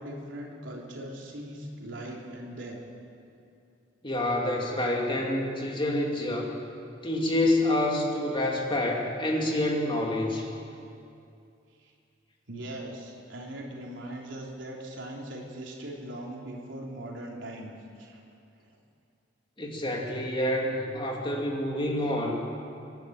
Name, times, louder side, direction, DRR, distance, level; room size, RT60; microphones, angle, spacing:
voice 1, 0.0-2.8 11.8-11.9 12.5-18.2 18.6-18.8, right 1 dB, 80° right, -2 dB, 3.6 m, -40 dB
voice 2, 4.0-6.5 7.0-10.5 19.6-22.3, left 1 dB, 25° left, -1 dB, 2.8 m, -27 dB
24.0 x 12.0 x 9.0 m, 2.5 s
head